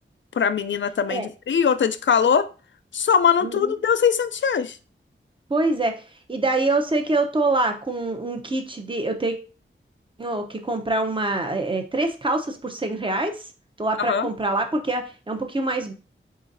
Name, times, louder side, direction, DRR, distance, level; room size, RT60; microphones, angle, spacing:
voice 1, 0.3-2.5 2.9-4.8 14.0-14.3, left 7 dB, 65° left, 0.4 m, -21 dB
voice 2, 3.4-3.7 5.5-5.9 6.3-9.4 10.2-13.4 13.8-15.9, right 2 dB, 25° right, 0.7 m, -25 dB
3.9 x 3.9 x 2.6 m
wide cardioid pair, 80°, 21 cm